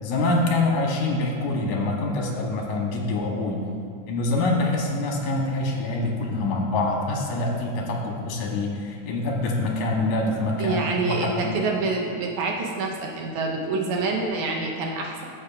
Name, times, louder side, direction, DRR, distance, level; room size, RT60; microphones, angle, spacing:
voice 1, 0.0-3.6 4.1-11.5, left 2 dB, 75° left, -1 dB, 2.3 m, -25 dB
voice 2, 10.6-15.2, right 3 dB, 80° right, 0 dB, 2.3 m, -27 dB
12.0 x 7.1 x 2.4 m, 2.3 s
omnidirectional pair, 3.5 m